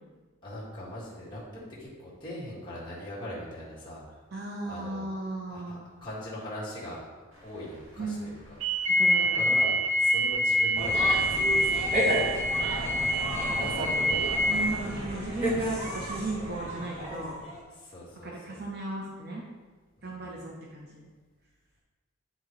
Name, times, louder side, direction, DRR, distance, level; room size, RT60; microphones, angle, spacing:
voice 1, 0.4-4.1 4.6-5.1 5.5-7.1 7.4-8.4 8.8-9.0 9.3-12.3 12.7-13.1 13.6-14.3 17.7-18.6 20.0-20.2, left 1 dB, 20° left, -8 dB, 1.9 m, -41 dB
voice 2, 4.3-5.9 8.0-8.3 9.0-9.4 14.5-17.3 18.2-19.4 20.0-21.1, right 2 dB, 50° right, -3 dB, 0.7 m, -35 dB
sound 1, 8.6-14.5, equal, 70° right, 1.3 m, -26 dB
sound 2, 10.7-17.6, equal, 25° right, 1.6 m, -32 dB
9.9 x 3.9 x 3.1 m, 1.4 s
head